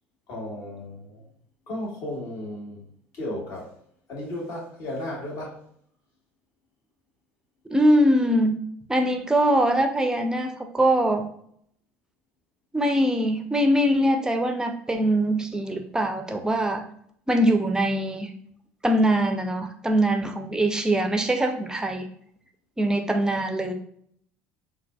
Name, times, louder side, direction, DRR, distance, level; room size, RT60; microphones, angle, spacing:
voice 1, 0.3-1.2 1.7-2.8 3.1-3.7 4.1-5.6, left 1 dB, 50° left, -3 dB, 1.3 m, -34 dB
voice 2, 7.7-8.5 8.9-11.3 12.7-16.8 17.3-18.3 18.8-22.1 22.8-23.7, right 1 dB, 10° right, 5 dB, 0.5 m, -22 dB
3.9 x 2.2 x 2.3 m, 0.65 s
figure-of-eight pair, 65°, 7 cm